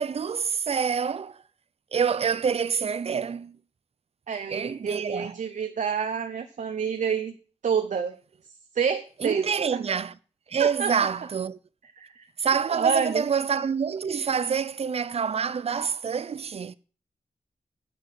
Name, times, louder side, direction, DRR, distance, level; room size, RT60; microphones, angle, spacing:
voice 1, 0.0-1.4 1.9-3.6 4.5-5.4 9.2-10.1 10.5-11.6 12.4-16.7, right 6 dB, 55° right, 0.5 m, -27 dB
voice 2, 4.3-7.4 7.6-8.2 8.7-9.8 10.6-10.9 12.0-12.2 12.7-13.3, right 6 dB, 90° right, 0.9 m, -28 dB
10.0 x 6.7 x 7.8 m
wide cardioid pair, 155°, 12 cm